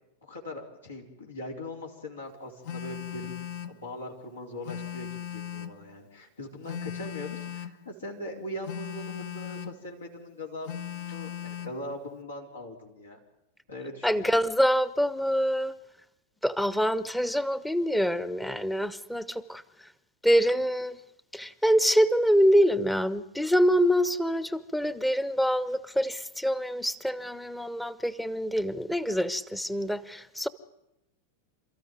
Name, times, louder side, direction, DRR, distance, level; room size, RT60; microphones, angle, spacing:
voice 1, 0.2-13.2 13.7-14.3, left 1 dB, 75° left, 0 dB, 4.1 m, -41 dB
Telephone, 2.6-3.8 4.6-5.8 6.6-7.8 8.6-9.8 10.6-11.8, left 9 dB, 50° left, 1.3 m, -37 dB
voice 2, 14.0-15.7 16.4-19.9 20.2-21.0 21.3-30.5, equal, 5° left, 17 dB, 1.0 m, -25 dB
28.5 x 14.0 x 9.3 m, 0.89 s
figure-of-eight pair, 90°, 0 cm